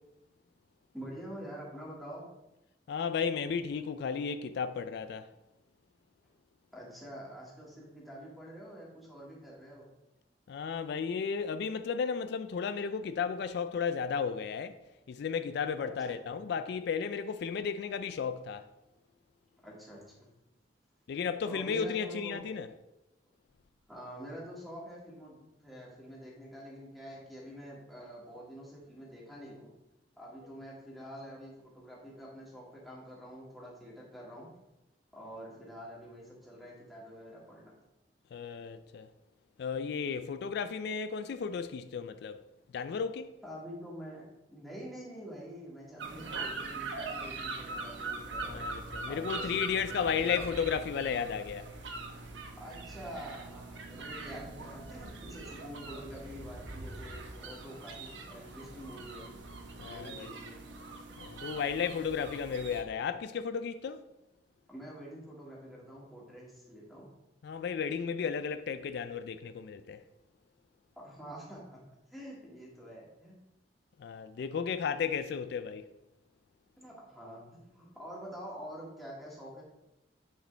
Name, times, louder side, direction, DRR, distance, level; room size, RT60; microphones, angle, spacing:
voice 1, 0.9-2.3 6.7-9.9 15.8-16.4 19.6-20.3 21.4-22.4 23.9-29.7 30.2-34.5 35.1-37.7 43.4-48.6 49.1-50.9 52.6-59.3 59.8-60.6 64.7-67.1 71.0-71.8 72.1-73.4 76.8-79.6, equal, ahead, 2.1 m, -46 dB
voice 2, 2.9-5.3 10.5-14.8 15.1-18.6 21.1-22.7 38.3-39.1 39.6-42.4 42.7-43.3 48.5-51.7 59.8-60.3 61.2-64.0 67.4-70.0 74.0-75.9, left 6 dB, 65° left, 0.3 m, -34 dB
sound 1, 46.0-62.8, right 3 dB, 90° right, 1.0 m, -42 dB
9.1 x 5.0 x 3.3 m
head